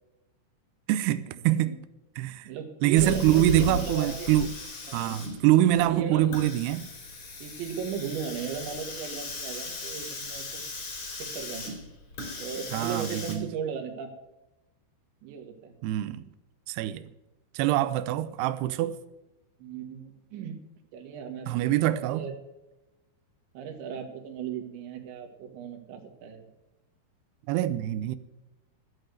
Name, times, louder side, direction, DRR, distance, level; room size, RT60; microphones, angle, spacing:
voice 1, 0.9-1.8 2.2-2.5 2.8-4.5 4.9-6.8 12.7-13.5 15.8-16.2 16.7-17.1 17.5-19.0 21.5-22.2 27.5-28.2, right 13 dB, 90° right, 2.4 m, -24 dB
voice 2, 2.5-4.3 4.9-5.2 5.8-6.4 7.4-10.6 11.2-11.8 12.4-14.1 15.2-15.8 19.6-20.6 20.9-22.3 23.6-26.5, right 7 dB, 75° right, 3.8 m, -36 dB
Hiss, 3.0-13.3, left 3 dB, 40° left, 3.9 m, -37 dB
13.0 x 8.9 x 6.5 m
omnidirectional pair, 5.5 m